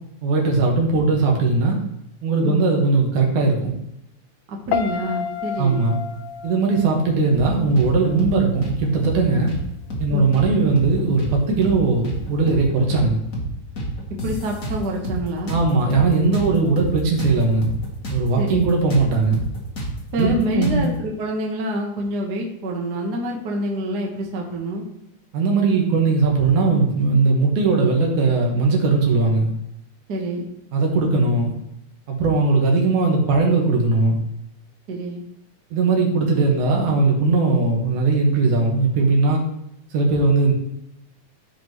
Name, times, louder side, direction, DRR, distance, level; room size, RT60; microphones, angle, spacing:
voice 1, 0.2-1.8 2.2-3.7 5.6-6.0 6.4-9.5 10.0-13.2 15.5-17.7 18.1-19.4 20.2-20.9 25.3-29.5 30.7-31.5 32.1-34.2 35.7-39.4 39.9-40.5, right 3 dB, 75° right, 0 dB, 2.9 m, -19 dB
voice 2, 4.5-5.8 10.1-10.3 14.2-15.5 18.4-18.6 20.1-24.8 30.1-30.5 34.9-35.2, right 1 dB, 50° right, 0 dB, 1.3 m, -26 dB
Piano, 4.7-7.8 8.1-8.5, left 7 dB, 80° left, 1.5 m, -30 dB
sound 1, 7.3-7.9 8.2-8.4 8.6-9.6 9.9-10.1 10.3-11.4 11.6-11.8 12.0-13.1 13.3-13.5 13.8-15.2 15.5-18.2 18.5-18.6 18.9-20.9, right 1 dB, 40° left, 1.3 m, -29 dB
13.5 x 5.3 x 3.1 m, 0.80 s
omnidirectional pair, 3.6 m